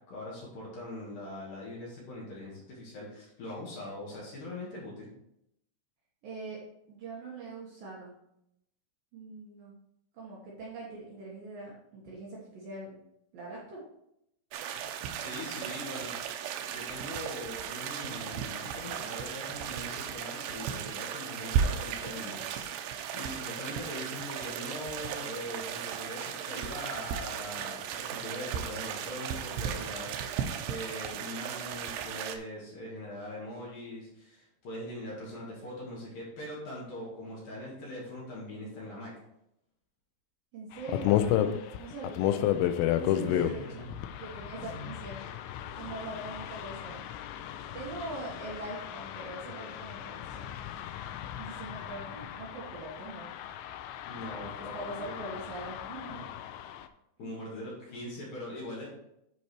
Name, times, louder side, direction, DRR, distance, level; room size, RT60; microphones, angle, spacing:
voice 1, 0.1-5.1 15.2-16.1 16.7-22.7 23.1-39.1 43.2-43.8 44.6-44.9 54.1-55.2 56.1-56.2 57.2-58.9, left 1 dB, 50° left, -5 dB, 3.3 m, -42 dB
voice 2, 6.2-6.6 6.9-8.1 9.1-9.7 10.1-13.0 13.3-13.8 40.5-42.5 42.9-43.9 44.2-45.2 45.8-47.1 47.7-50.5 51.4-53.3 54.4-54.5 54.7-56.3 57.2-57.4, right 2 dB, 60° right, -6 dB, 2.6 m, -42 dB
sound 1, 14.5-32.4, right 8 dB, 90° right, 2.3 m, -36 dB
sound 2, 40.7-56.9, left 11 dB, 80° left, 2.9 m, -33 dB
11.5 x 4.6 x 4.5 m, 0.81 s
omnidirectional pair, 5.8 m